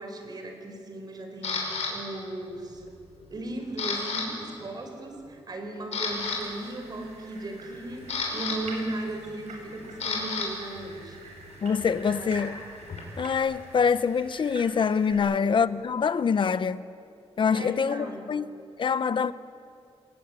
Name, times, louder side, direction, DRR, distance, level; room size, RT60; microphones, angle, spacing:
voice 1, 0.0-2.9 3.3-11.2 12.1-12.4 15.2-15.6 17.5-18.3, right 2 dB, 40° right, 4.9 m, -37 dB
Camera, 1.4-1.9 2.5-2.8 3.2-4.3 4.5-4.7 5.3-5.4 5.8-6.4 7.6-10.5 10.8-13.4, left 4 dB, 90° left, 6.7 m, -33 dB
sound 1, 6.1-15.1, right 2 dB, 85° right, 7.3 m, -46 dB
voice 2, 11.6-12.5 13.2-16.8 17.4-18.5 18.8-19.3, left 6 dB, 50° left, 0.8 m, -25 dB
27.5 x 21.0 x 9.7 m
wide cardioid pair, 160°, 11 cm